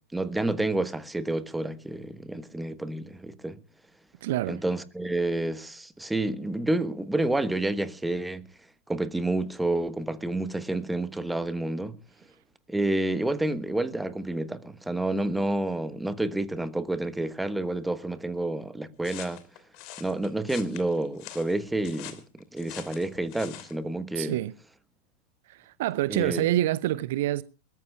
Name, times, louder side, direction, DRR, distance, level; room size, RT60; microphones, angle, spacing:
voice 1, 0.1-3.6 4.5-8.4 8.9-11.9 12.7-19.4 20.0-22.2 22.5-24.3 26.1-26.5, right 2 dB, 5° right, 1.3 m, -29 dB
voice 2, 4.2-4.6 24.2-24.5 25.5-27.4, right 14 dB, 55° right, 0.6 m, -27 dB
sound 1, 19.0-23.8, left 13 dB, 45° left, 3.1 m, -44 dB
22.5 x 20.0 x 2.4 m
figure-of-eight pair, 90°, 0 cm